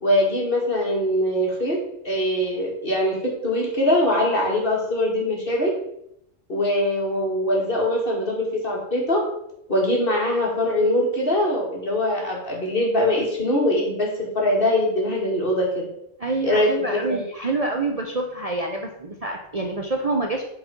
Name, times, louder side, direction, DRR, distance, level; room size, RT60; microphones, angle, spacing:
voice 1, 0.0-5.7 6.5-9.2 9.7-15.9 16.4-17.2, left 1 dB, 45° left, -2 dB, 2.6 m, -22 dB
voice 2, 16.2-20.4, right 2 dB, 30° right, 1 dB, 0.9 m, -27 dB
8.7 x 4.9 x 5.4 m, 0.77 s
omnidirectional pair, 1.3 m